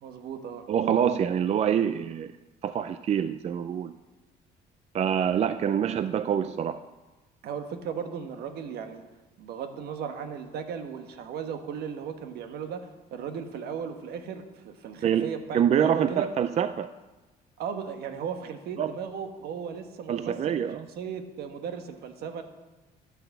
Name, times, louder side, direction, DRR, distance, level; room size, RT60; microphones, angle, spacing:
voice 1, 0.0-0.7 5.0-5.7 7.4-9.0 9.4-16.3 17.6-20.7 21.0-22.4, right 7 dB, 70° right, 7 dB, 1.2 m, -36 dB
voice 2, 0.7-2.3 2.6-3.9 4.9-6.8 15.0-16.9 18.8-18.9 20.1-20.9, right 8 dB, 40° right, 12 dB, 0.4 m, -26 dB
12.0 x 6.1 x 7.2 m, 1.2 s
cardioid pair, 110°, 17 cm